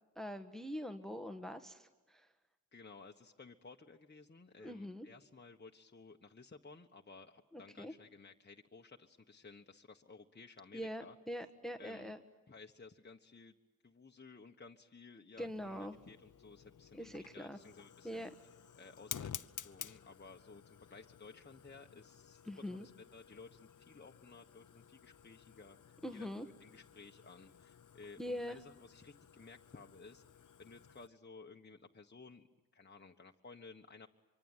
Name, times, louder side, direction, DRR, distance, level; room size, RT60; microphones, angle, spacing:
voice 1, 0.1-2.3 4.6-5.1 7.5-7.9 10.7-12.2 15.4-16.0 16.9-17.6 18.0-18.3 22.4-22.9 26.0-26.5 28.2-28.6, equal, ahead, 8 dB, 1.5 m, -43 dB
voice 2, 2.7-11.1 11.8-12.1 12.5-13.5 13.8-18.3 18.7-19.3 19.6-25.8 26.1-26.3 26.6-30.2 30.6-32.5 32.7-34.1, left 4 dB, 30° left, 2 dB, 1.4 m, -56 dB
Fire, 15.4-31.1, left 8 dB, 55° left, 1.0 m, -53 dB
25.0 x 24.5 x 9.2 m, 1.2 s
cardioid pair, 65°, 35 cm